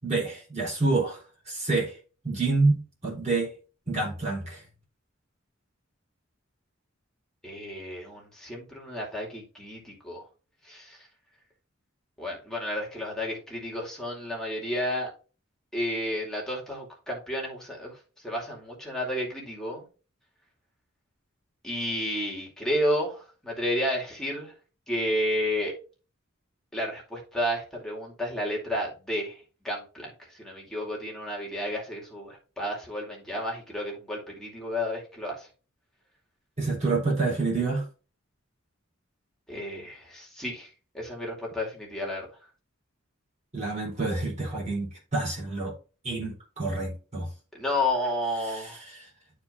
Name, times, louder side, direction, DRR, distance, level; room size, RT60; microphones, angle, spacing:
voice 1, 0.0-2.0 2.2-3.5 3.9-4.6 36.6-37.8 43.5-45.7 46.0-47.3 48.4-49.1, right 3 dB, 35° right, 3.9 m, -28 dB
voice 2, 7.4-10.2 10.6-11.1 12.2-15.1 15.7-17.9 18.2-19.9 21.6-24.5 24.9-25.7 26.7-35.5 39.5-40.7 40.9-42.3 47.5-48.8, left 1 dB, 5° left, 2.5 m, -31 dB
12.0 x 4.6 x 2.6 m
head